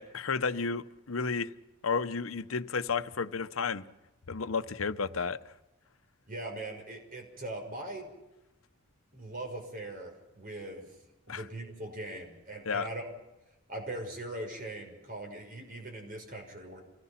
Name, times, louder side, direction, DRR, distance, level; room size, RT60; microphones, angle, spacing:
voice 1, 0.0-1.5 1.8-3.9 4.3-5.5 11.3-11.4 12.6-12.9, left 5 dB, 80° left, 0.8 m, -32 dB
voice 2, 6.3-8.1 9.1-11.0 11.3-13.1 13.7-16.8, right 1 dB, 40° right, 6.0 m, -40 dB
26.0 x 18.0 x 5.9 m
head